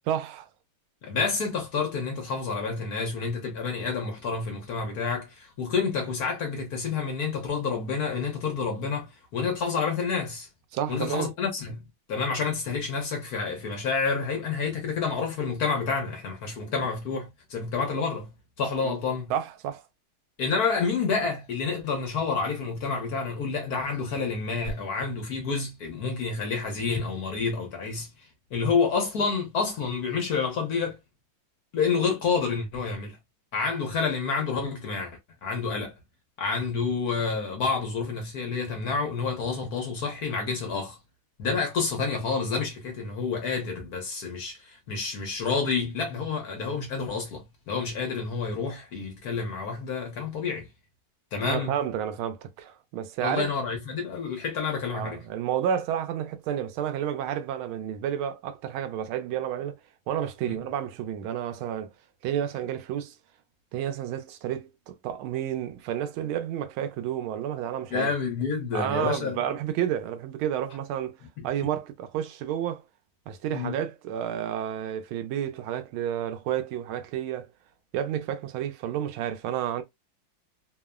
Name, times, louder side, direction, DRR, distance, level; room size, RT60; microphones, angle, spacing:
voice 1, 0.1-0.5 10.7-11.3 18.8-19.0 19.3-19.8 51.4-53.5 54.9-59.8 60.1-61.9 62.2-63.1 63.7-68.1 68.7-72.8 73.3-77.5 77.9-79.8, right 10 dB, 90° right, 1.4 m, -30 dB
voice 2, 1.0-10.5 10.9-19.3 20.4-31.0 31.7-33.2 33.5-35.9 36.4-41.0 41.4-50.7 51.3-51.7 53.2-55.2 60.5-60.6 67.9-69.4 71.4-71.5 73.5-73.8, left 5 dB, 60° left, 1.1 m, -29 dB
3.4 x 2.0 x 2.2 m
omnidirectional pair, 2.2 m